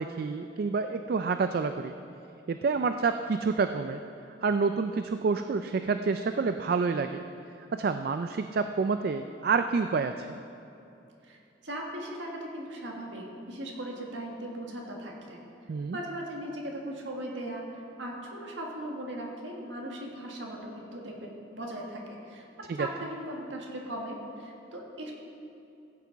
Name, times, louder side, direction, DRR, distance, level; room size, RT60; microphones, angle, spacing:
voice 1, 0.0-1.9 2.5-4.0 4.4-7.2 7.7-10.4 15.7-16.0 22.8-22.9, right 4 dB, 55° right, 8 dB, 0.3 m, -28 dB
voice 2, 11.2-15.4 15.9-22.5 22.7-25.1, right 1 dB, 80° right, -1 dB, 1.8 m, -38 dB
15.5 x 8.3 x 4.0 m, 2.8 s
head